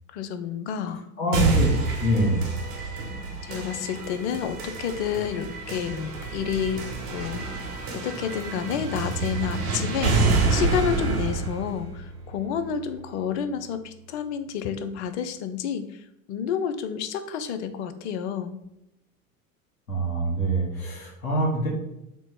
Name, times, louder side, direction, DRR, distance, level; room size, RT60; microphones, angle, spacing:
voice 1, 0.1-1.7 2.8-3.0 3.4-6.8 7.1-7.4 7.9-18.6, left 8 dB, 55° left, 10 dB, 0.5 m, -30 dB
voice 2, 1.2-1.7 2.0-2.4 19.9-21.7, right 1 dB, 75° left, -5 dB, 1.3 m, -24 dB
sound 1, 1.3-13.3, right 3 dB, 45° right, 0.9 m, -28 dB
4.3 x 2.0 x 4.2 m, 0.85 s
figure-of-eight pair, 80°, 43 cm